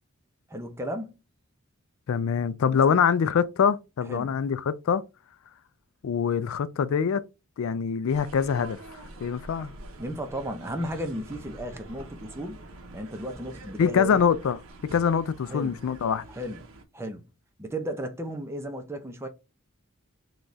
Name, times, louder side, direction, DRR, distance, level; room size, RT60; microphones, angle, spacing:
voice 1, 0.5-1.2 2.7-2.9 4.1-4.4 10.0-12.6 12.9-14.2 15.5-15.8 16.3-16.6 16.9-17.3 17.6-19.3, equal, 10° right, 0.5 m, -34 dB
voice 2, 2.1-5.0 6.0-7.2 7.6-9.7 13.8-14.6 14.9-16.2, left 7 dB, 70° left, 0.3 m, -24 dB
sound 1, 8.1-16.8, right 2 dB, 75° right, 0.7 m, -46 dB
4.0 x 2.3 x 3.1 m
head